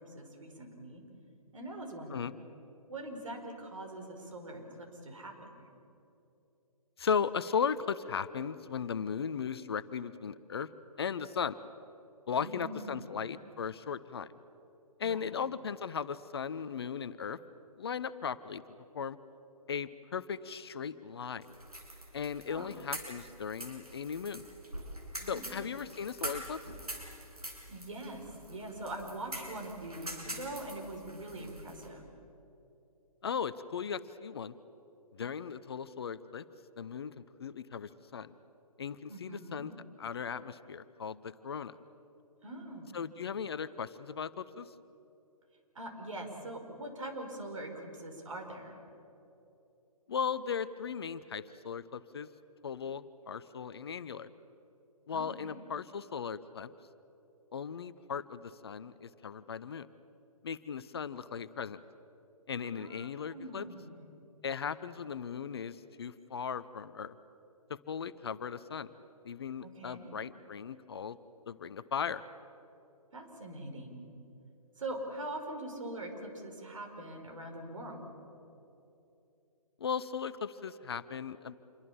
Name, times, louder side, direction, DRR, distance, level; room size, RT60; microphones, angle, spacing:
voice 1, 0.1-1.0 1.5-2.2 2.9-5.6 12.4-13.3 15.0-15.4 22.5-22.7 25.2-25.7 27.7-32.1 39.1-39.6 42.4-43.0 45.8-48.8 55.1-55.6 62.6-64.0 69.6-70.1 73.1-74.0 74.8-78.2, right 1 dB, 55° right, 3 dB, 5.3 m, -43 dB
voice 2, 7.0-10.7 11.0-11.5 12.3-14.3 15.0-17.4 17.8-18.6 18.9-19.2 19.7-21.4 22.1-24.4 25.3-26.6 33.2-34.5 35.1-36.4 36.8-38.3 38.8-39.7 40.0-41.7 42.9-44.7 50.1-52.3 52.6-54.3 55.1-56.7 57.5-59.9 60.4-61.8 62.5-63.7 64.4-67.1 67.7-68.9 69.2-71.2 71.5-72.2 79.8-81.5, left 6 dB, 40° left, 14 dB, 0.7 m, -37 dB
sound 1, 21.4-31.9, right 1 dB, 75° right, 6.7 m, -45 dB
27.5 x 23.0 x 7.4 m, 2.8 s
figure-of-eight pair, 135°, 19 cm